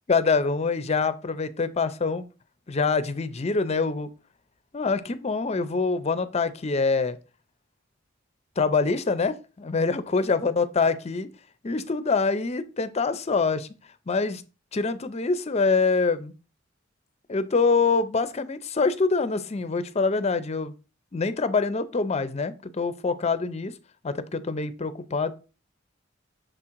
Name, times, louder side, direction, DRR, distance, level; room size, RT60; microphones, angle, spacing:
voice 1, 0.1-2.3 2.7-4.1 4.7-7.2 8.6-11.3 11.6-13.7 14.1-14.4 14.7-16.3 17.3-20.7 21.1-23.7 24.0-25.3, left 4 dB, 35° left, 13 dB, 0.5 m, -25 dB
6.6 x 3.7 x 4.5 m, 0.33 s
head